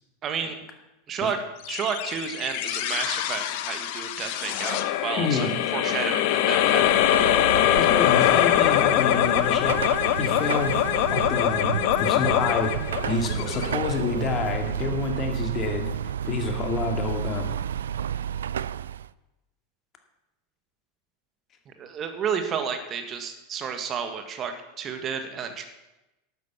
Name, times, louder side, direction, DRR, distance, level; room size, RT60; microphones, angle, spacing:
voice 1, 0.2-0.5 1.1-1.4 1.7-6.8 21.8-25.6, right 7 dB, 30° right, 7 dB, 1.5 m, -31 dB
sound 1, 1.7-14.3, left 12 dB, 50° left, 0.9 m, -23 dB
voice 2, 5.2-5.5 7.8-9.8 10.2-10.8 11.1-12.7 13.1-15.9 16.2-17.5, left 4 dB, 30° left, 4 dB, 2.2 m, -28 dB
Car passing by / Traffic noise roadway noise / Engine, 6.5-19.1, right 9 dB, 65° right, 0.3 m, -31 dB
12.0 x 9.2 x 7.2 m, 0.97 s
figure-of-eight pair, 85°, 0 cm